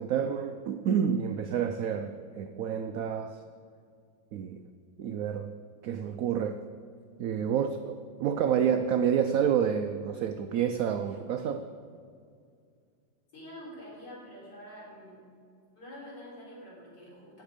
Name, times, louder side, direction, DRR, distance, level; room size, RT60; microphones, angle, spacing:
voice 1, 0.0-3.4 4.3-4.6 5.0-5.5 5.8-6.6 7.2-11.7, right 8 dB, 80° right, 7 dB, 0.7 m, -29 dB
voice 2, 13.3-15.2 15.8-17.4, equal, 65° left, -5 dB, 4.2 m, -46 dB
17.0 x 7.0 x 5.1 m, 2.3 s
omnidirectional pair, 2.0 m